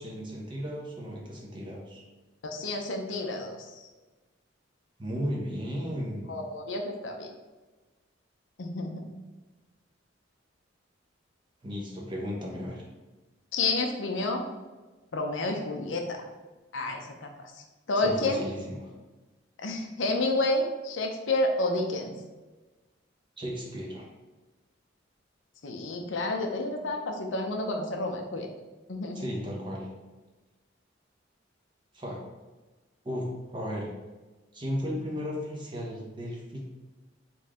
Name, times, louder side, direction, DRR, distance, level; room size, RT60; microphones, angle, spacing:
voice 1, 0.0-2.0 5.0-6.4 11.6-12.8 18.0-18.9 23.4-24.1 29.1-29.9 31.9-32.2 33.0-33.9 34.5-36.8, equal, 25° right, -2 dB, 0.9 m, -35 dB
voice 2, 2.4-3.6 6.3-7.3 8.6-9.0 13.5-14.5 15.1-16.2 16.7-17.5 17.9-18.5 19.6-22.1 25.6-28.5 28.9-29.3, left 2 dB, 80° left, 3 dB, 0.6 m, -30 dB
4.3 x 3.2 x 3.6 m, 1.2 s
head